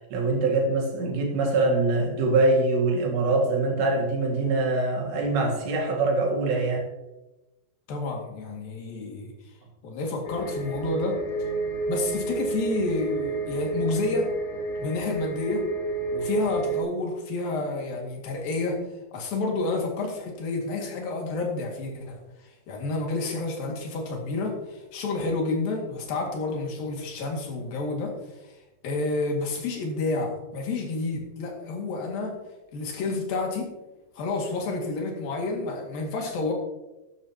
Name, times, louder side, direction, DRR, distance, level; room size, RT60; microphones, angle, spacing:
voice 1, 0.1-6.9, right 2 dB, 80° right, 0 dB, 4.3 m, -23 dB
voice 2, 7.9-9.3 9.8-11.2 11.9-14.3 14.8-15.6 16.1-18.8 19.1-22.2 22.7-28.1 28.4-28.5 28.8-32.4 32.7-33.7 34.2-36.5, left 3 dB, 60° left, 0 dB, 3.6 m, -29 dB
sound 1, 10.2-16.8, right 3 dB, 75° left, 5.1 m, -30 dB
12.5 x 12.0 x 2.9 m, 1.0 s
omnidirectional pair, 5.0 m